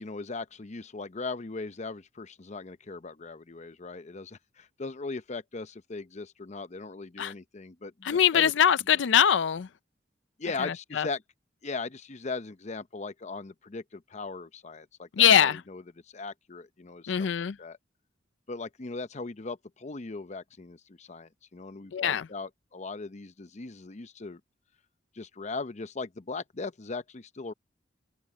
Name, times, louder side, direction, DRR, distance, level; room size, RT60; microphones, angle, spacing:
voice 1, 0.0-8.5 10.4-11.2 11.6-17.1 17.6-17.8 18.5-24.4 25.1-27.5, left 3 dB, 40° left, 0.7 m, -39 dB
voice 2, 8.0-9.7 10.6-11.1 15.2-15.6 17.1-17.6 21.9-22.3, left 9 dB, 80° left, 0.4 m, -23 dB
head